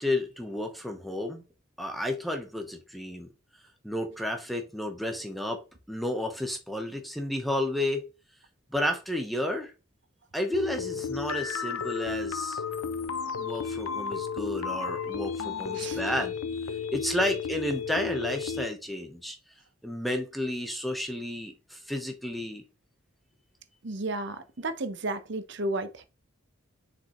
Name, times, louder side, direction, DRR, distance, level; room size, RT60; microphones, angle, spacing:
voice 1, 0.0-1.4 1.8-3.3 3.8-8.1 8.7-9.7 10.3-12.6 13.4-16.4 16.9-19.4 19.8-22.6, left 1 dB, ahead, 1.0 m, -32 dB
sound 1, 10.5-18.7, left 6 dB, 85° left, 0.6 m, -33 dB
voice 2, 23.8-26.0, right 2 dB, 55° right, 0.9 m, -33 dB
6.9 x 5.1 x 3.1 m
head